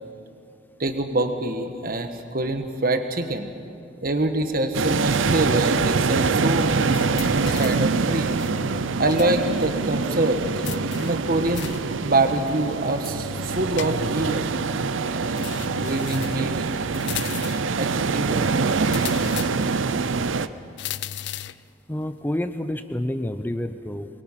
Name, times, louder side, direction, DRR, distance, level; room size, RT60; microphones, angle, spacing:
voice 1, 0.8-3.5 4.0-8.4 9.0-11.7 12.0-14.5 15.1-16.7 17.8-18.5, right 2 dB, 45° right, 7 dB, 1.4 m, -26 dB
sound 1, 4.7-20.5, right 4 dB, 80° right, 0.6 m, -24 dB
sound 2, 6.9-7.9 8.4-9.4 9.6-9.7 10.6-11.9 13.0-14.3 15.4-16.5 16.9-17.7 18.8-19.8 20.8-21.7, left 10 dB, 60° left, 0.4 m, -36 dB
voice 2, 21.9-24.1, left 1 dB, 10° left, 9 dB, 0.6 m, -28 dB
23.0 x 22.0 x 5.9 m, 2.5 s
head